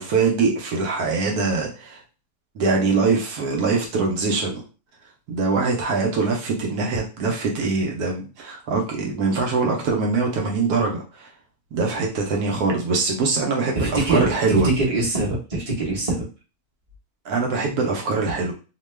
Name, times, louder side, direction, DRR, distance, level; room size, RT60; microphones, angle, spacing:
voice 1, 0.0-2.0 2.5-4.6 5.3-11.3 11.7-14.7 17.2-18.5, right 4 dB, 75° right, 0 dB, 1.1 m, -23 dB
voice 2, 13.7-14.3 14.6-16.1, right 2 dB, 25° right, -4 dB, 1.0 m, -23 dB
2.9 x 2.2 x 3.2 m, 0.33 s
omnidirectional pair, 1.7 m